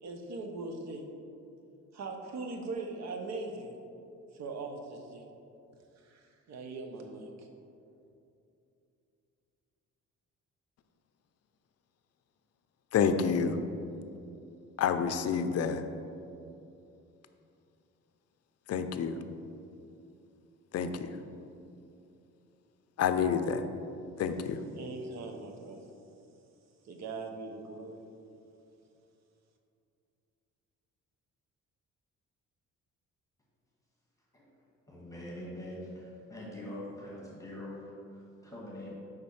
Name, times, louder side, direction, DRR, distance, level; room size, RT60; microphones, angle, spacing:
voice 1, 0.0-1.1 1.9-3.8 4.3-5.3 6.0-7.5 24.8-25.9 26.8-28.1, right 3 dB, 60° right, 4 dB, 0.9 m, -40 dB
voice 2, 12.9-13.6 14.8-15.8 18.7-19.2 20.7-21.1 23.0-23.6 24.2-24.6, left 6 dB, 55° left, 9 dB, 0.5 m, -28 dB
voice 3, 34.9-39.0, left 1 dB, 10° left, -5 dB, 1.5 m, -43 dB
5.2 x 4.2 x 5.6 m, 2.7 s
cardioid pair, 90°, 30 cm